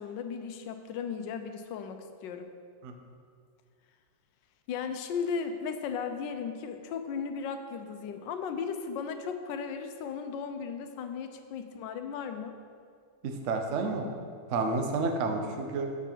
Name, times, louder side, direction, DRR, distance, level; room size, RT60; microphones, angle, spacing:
voice 1, 0.0-2.5 4.7-12.6, left 6 dB, 75° left, 7 dB, 1.2 m, -36 dB
voice 2, 13.2-14.0 14.5-15.9, right 3 dB, 60° right, 4 dB, 0.8 m, -30 dB
7.2 x 6.9 x 4.5 m, 2.2 s
omnidirectional pair, 2.1 m